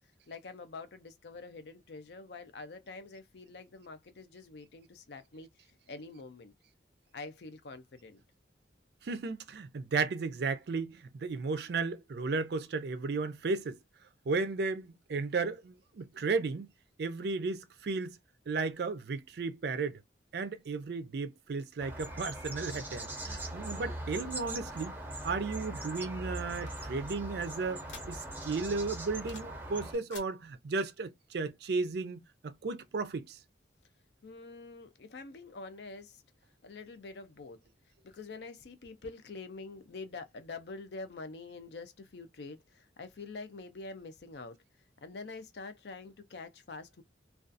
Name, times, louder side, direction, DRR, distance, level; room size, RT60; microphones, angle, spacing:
voice 1, 0.3-5.5 5.9-6.5 7.1-8.2 34.2-36.2 36.6-37.6 38.0-44.6 45.0-47.0, left 3 dB, 60° left, 0.5 m, -46 dB
voice 2, 9.0-13.8 14.3-16.7 17.0-18.2 18.5-20.0 20.3-25.0 25.2-27.8 28.1-33.4, right 4 dB, 60° right, 0.4 m, -34 dB
sound 1, 21.8-30.0, right 1 dB, 10° right, 0.6 m, -41 dB
sound 2, 26.7-28.5 28.8-29.6 29.9-30.3, left 4 dB, 80° left, 1.0 m, -52 dB
2.4 x 2.3 x 2.5 m
head